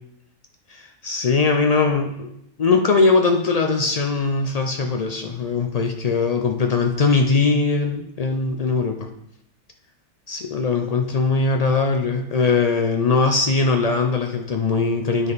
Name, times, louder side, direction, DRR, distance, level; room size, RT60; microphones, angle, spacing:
voice 1, 0.7-2.3 2.6-9.1 10.3-15.3, left 4 dB, 70° left, 4 dB, 0.3 m, -20 dB
9.4 x 5.3 x 4.0 m, 0.78 s
omnidirectional pair, 1.5 m